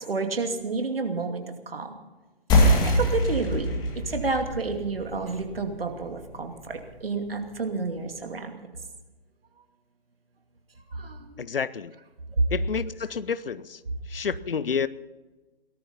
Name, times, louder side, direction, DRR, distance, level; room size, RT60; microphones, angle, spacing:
voice 1, 0.0-1.9 2.6-3.7 4.1-8.6 10.9-11.2, right 3 dB, 65° right, 4 dB, 2.7 m, -30 dB
sound 1, 2.5-7.6, left 1 dB, 15° left, 2.3 m, -25 dB
voice 2, 11.4-11.9 12.5-13.8 14.1-14.9, left 6 dB, 65° left, 17 dB, 0.8 m, -29 dB
18.0 x 13.0 x 5.6 m, 1.2 s
figure-of-eight pair, 140°, 30 cm